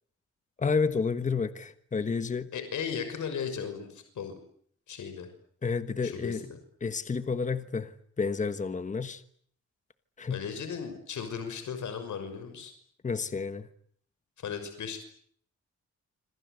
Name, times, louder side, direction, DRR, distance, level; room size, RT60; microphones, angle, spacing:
voice 1, 0.6-2.5 5.6-6.5 6.8-7.9 8.2-9.2 10.2-10.4 13.0-13.7, left 5 dB, 25° left, 1.4 m, -30 dB
voice 2, 2.5-4.3 4.9-5.3 6.0-6.6 10.3-12.7 14.4-15.0, left 7 dB, 80° left, 6.2 m, -36 dB
27.0 x 26.5 x 8.1 m
wide cardioid pair, 175°, 29 cm